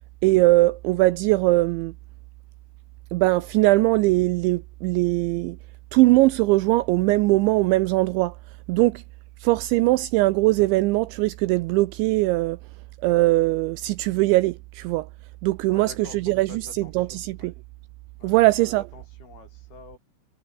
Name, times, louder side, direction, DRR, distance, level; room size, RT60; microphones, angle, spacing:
voice 1, 0.2-1.9 3.1-5.6 5.9-8.4 8.7-9.0 9.4-12.6 13.0-15.1 15.4-17.5 18.2-18.8, right 20 dB, 90° right, 2.6 m, -21 dB
voice 2, 15.7-17.5 18.2-20.0, left 5 dB, 50° left, 7.1 m, -47 dB
omnidirectional pair, 5.9 m